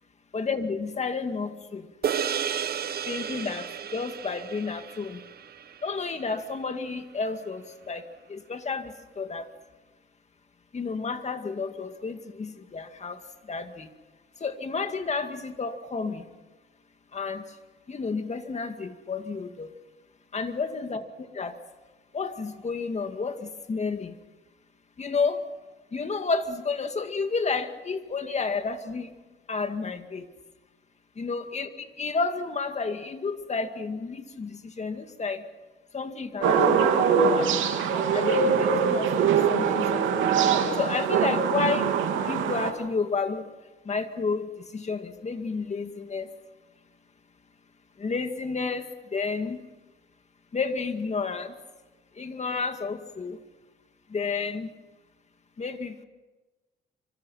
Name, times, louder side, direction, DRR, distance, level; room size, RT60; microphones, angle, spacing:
voice 1, 0.3-1.9 3.1-5.2 5.8-8.0 8.3-9.5 10.7-13.2 13.5-13.9 14.4-16.2 17.1-17.4 17.9-19.7 20.3-21.0 21.3-21.6 22.1-24.1 25.0-25.4 25.9-29.1 29.5-30.3 31.2-35.4 35.9-37.6 37.9-40.4 40.8-41.9 42.3-43.4 43.9-46.3 48.0-49.6 50.5-51.5 52.2-53.4 54.1-54.7 55.6-56.0, left 4 dB, 35° left, 7 dB, 2.2 m, -31 dB
sound 1, 2.0-6.6, right 8 dB, 50° right, 1.1 m, -33 dB
sound 2, 36.4-42.7, right 6 dB, 80° right, 2.9 m, -23 dB
26.0 x 25.5 x 5.7 m, 1.2 s
cardioid pair, 90°, 20 cm